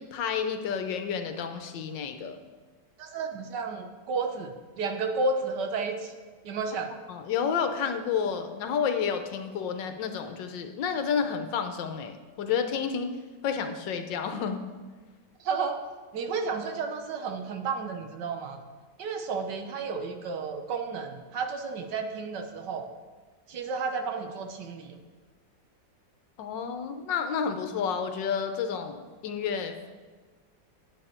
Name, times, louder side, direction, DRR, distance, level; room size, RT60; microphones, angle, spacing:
voice 1, 0.0-2.4 7.1-13.1 13.4-14.6 26.4-29.9, left 7 dB, 75° left, 7 dB, 1.5 m, -30 dB
voice 2, 3.0-6.1 6.4-6.9 15.4-15.8 16.1-18.6 19.0-22.9 23.5-25.0, right 4 dB, 70° right, 5 dB, 1.4 m, -32 dB
9.2 x 8.4 x 4.4 m, 1.4 s
omnidirectional pair, 2.0 m